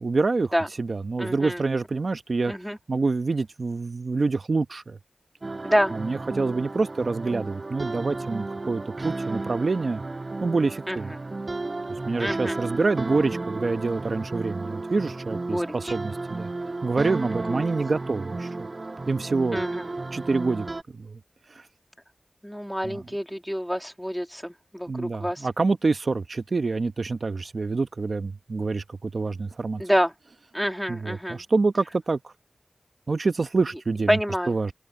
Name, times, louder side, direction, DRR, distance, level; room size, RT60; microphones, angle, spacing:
voice 1, 0.0-2.5 2.9-5.0 5.9-10.0 10.4-11.1 11.9-16.5 16.8-18.7 19.1-19.6 20.1-20.7 21.0-21.2 22.8-23.0 24.9-29.8 30.9-32.3 33.1-34.2 34.5-34.7, right 3 dB, 70° right, 1.0 m, -26 dB
voice 2, 1.2-1.6 2.5-2.8 5.6-5.9 10.9-11.0 12.2-12.6 15.5-15.9 17.5-17.6 19.5-19.9 22.4-25.5 29.8-30.1 30.5-31.4 34.1-34.5, equal, ahead, 2.6 m, -27 dB
sound 1, 5.4-20.8, right 2 dB, 50° right, 6.3 m, -33 dB
open air
wide cardioid pair, 50°, 0 cm